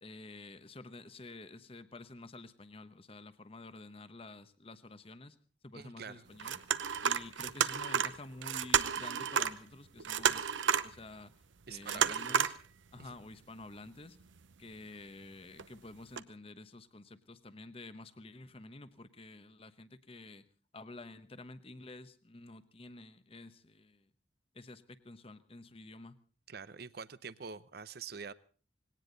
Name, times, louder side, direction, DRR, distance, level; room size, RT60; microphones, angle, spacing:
voice 1, 0.0-5.4 5.6-6.6 7.0-10.5 10.8-11.3 11.7-12.5 12.9-14.2 14.6-20.4 20.7-24.1 24.5-26.2, left 2 dB, 30° left, 1.0 m, -50 dB
voice 2, 5.7-6.2 11.7-12.5 13.0-13.2 26.5-28.3, right 5 dB, 55° right, 0.7 m, -45 dB
sound 1, 6.4-9.6 9.9-11.0 11.8-12.6 13.0-13.1 14.2-14.5 15.6-15.7 16.2-16.3, right 8 dB, 85° right, 0.8 m, -31 dB
20.0 x 18.0 x 4.0 m
head